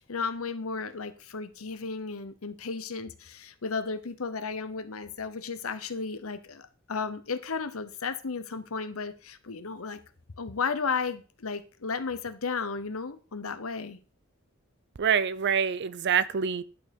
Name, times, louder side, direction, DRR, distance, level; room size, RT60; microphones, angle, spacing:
voice 1, 0.0-10.0 10.4-14.0, left 5 dB, 85° left, 11 dB, 0.9 m, -34 dB
voice 2, 15.0-16.6, right 7 dB, 55° right, 16 dB, 0.6 m, -26 dB
11.0 x 4.6 x 5.3 m, 0.36 s
head